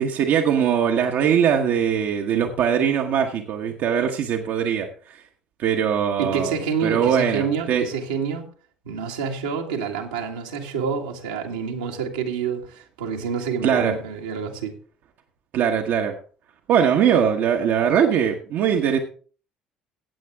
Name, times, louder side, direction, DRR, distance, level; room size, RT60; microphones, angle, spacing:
voice 1, 0.0-5.2 5.6-6.5 6.8-7.9 13.6-14.0 15.5-16.2 16.7-19.0, right 8 dB, 60° right, 3 dB, 1.2 m, -21 dB
voice 2, 6.2-8.5 8.9-14.7, right 6 dB, 80° right, 0 dB, 1.9 m, -28 dB
15.5 x 8.6 x 3.6 m, 0.41 s
hypercardioid pair, 55°, 4 cm